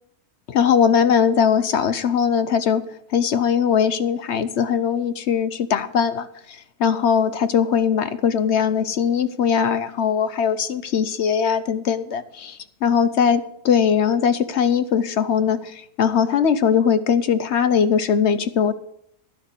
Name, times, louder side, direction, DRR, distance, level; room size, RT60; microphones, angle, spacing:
voice 1, 0.5-2.8 3.1-18.7, left 7 dB, 60° left, 12 dB, 0.9 m, -20 dB
11.5 x 6.1 x 8.0 m, 0.72 s
omnidirectional pair, 1.5 m